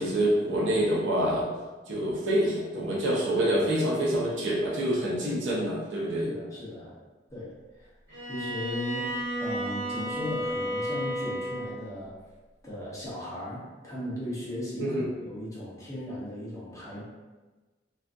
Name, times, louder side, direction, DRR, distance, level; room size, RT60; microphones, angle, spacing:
voice 1, 0.0-1.5 1.9-6.3 14.8-15.0, right 1 dB, 85° right, -4 dB, 0.6 m, -26 dB
voice 2, 6.2-6.9 7.3-7.9 8.3-9.1 9.4-12.2 12.6-17.0, left 1 dB, 20° left, -7 dB, 0.7 m, -37 dB
Bowed string instrument, 8.1-11.8, equal, 60° right, 1.2 m, -32 dB
2.4 x 2.3 x 2.5 m, 1.2 s
head